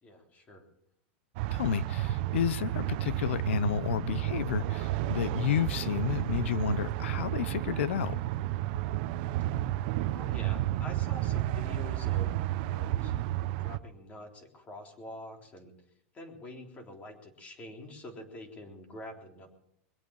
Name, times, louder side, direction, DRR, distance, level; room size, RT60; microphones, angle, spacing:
voice 1, 0.0-0.6 10.1-13.1 13.6-15.7 16.1-19.5, left 1 dB, 20° left, 3 dB, 3.6 m, -46 dB
sound 1, 1.4-13.8, right 14 dB, 55° right, 0.8 m, -32 dB
voice 2, 1.5-8.2, left 10 dB, 80° left, 18 dB, 0.8 m, -31 dB
22.5 x 8.4 x 7.6 m, 0.74 s
supercardioid pair, 145°, 6 cm